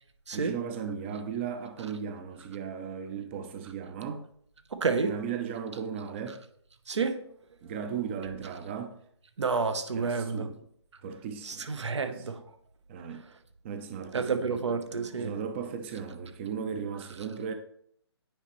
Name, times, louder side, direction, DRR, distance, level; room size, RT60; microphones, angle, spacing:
voice 1, 0.3-4.3 5.0-6.4 7.6-9.0 9.9-10.6 11.0-11.7 12.1-12.3 12.9-13.2 13.6-14.6 15.2-17.5, right 7 dB, 25° right, 0.5 m, -36 dB
voice 2, 4.7-5.1 6.9-7.2 9.4-10.5 11.4-12.4 14.1-15.3, right 5 dB, 80° right, 0.9 m, -29 dB
9.2 x 4.2 x 3.0 m
hypercardioid pair, 150°, 15 cm